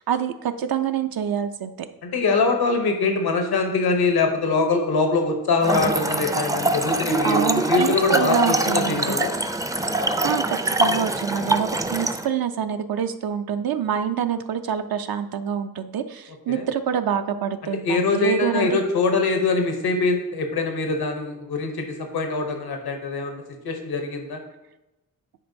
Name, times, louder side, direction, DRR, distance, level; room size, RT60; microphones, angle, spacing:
voice 1, 0.0-1.9 7.2-9.2 10.0-18.7, right 8 dB, 70° right, 9 dB, 0.5 m, -26 dB
voice 2, 2.0-9.3 16.5-16.6 17.8-24.4, left 3 dB, 85° left, 4 dB, 0.9 m, -23 dB
Trickle dribble / Fill (with liquid), 5.6-12.3, right 2 dB, 10° right, 0.4 m, -24 dB
9.9 x 4.4 x 2.7 m, 0.99 s
cardioid pair, 60°, 37 cm